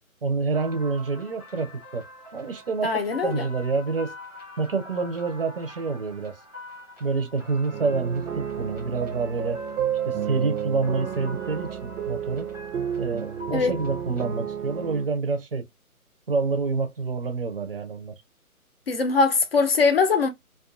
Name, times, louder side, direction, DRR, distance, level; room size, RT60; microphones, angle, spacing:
voice 1, 0.2-2.1 2.3-4.1 4.6-6.4 7.0-9.6 10.0-12.5 13.0-15.6 16.3-18.1, right 4 dB, 40° right, 0.5 m, -27 dB
sound 1, 0.5-14.2, left 1 dB, 5° right, 0.7 m, -45 dB
voice 2, 2.8-3.4 13.5-13.7 18.9-20.3, left 4 dB, 45° left, 0.5 m, -21 dB
sound 2, 7.7-15.1, right 8 dB, 85° right, 0.6 m, -31 dB
2.4 x 2.4 x 2.4 m
hypercardioid pair, 165°, 44 cm